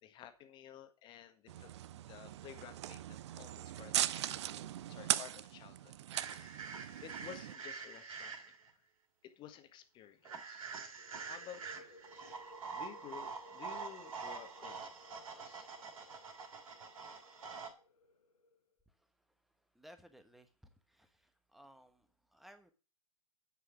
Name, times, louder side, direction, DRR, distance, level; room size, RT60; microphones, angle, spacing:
voice 1, 0.0-1.7 2.1-6.5 7.0-8.5 9.2-10.7 11.2-15.7, left 10 dB, 25° left, 9 dB, 1.6 m, -54 dB
sound 1, 1.5-7.5, right 12 dB, 50° right, 0.6 m, -39 dB
sound 2, 6.1-8.7 10.2-17.7, right 5 dB, 65° right, 2.8 m, -46 dB
sound 3, 11.0-18.6, left 2 dB, 80° left, 1.2 m, -61 dB
voice 2, 19.7-22.7, equal, ahead, 8 dB, 1.2 m, -60 dB
9.9 x 5.6 x 7.2 m, 0.34 s
figure-of-eight pair, 115°, 19 cm